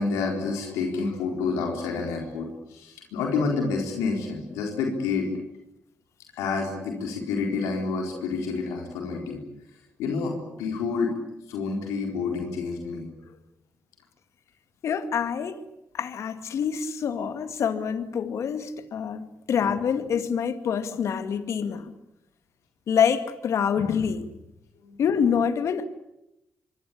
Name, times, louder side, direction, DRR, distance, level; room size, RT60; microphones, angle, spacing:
voice 1, 0.0-5.3 6.4-9.4 10.0-11.2 11.5-13.1 24.8-25.0, left 4 dB, 90° left, 4.1 m, -28 dB
voice 2, 14.8-15.6 15.9-21.9 22.9-24.3 25.0-25.8, left 7 dB, 70° left, 2.3 m, -26 dB
26.0 x 24.0 x 8.6 m
supercardioid pair, 45°, 5 cm